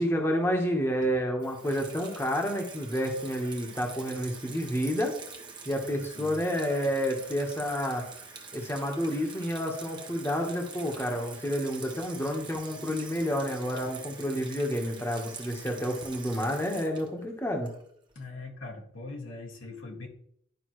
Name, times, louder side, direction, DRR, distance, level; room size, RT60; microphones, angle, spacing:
voice 1, 0.0-5.1 5.6-8.0 8.5-17.7, equal, 10° left, 2 dB, 1.1 m, -29 dB
Water tap faucet / Sink (filling or washing), 1.4-18.1, right 5 dB, 25° right, 1.1 m, -45 dB
voice 2, 18.2-20.1, left 3 dB, 90° left, -1 dB, 2.0 m, -41 dB
11.5 x 5.3 x 3.1 m, 0.67 s
head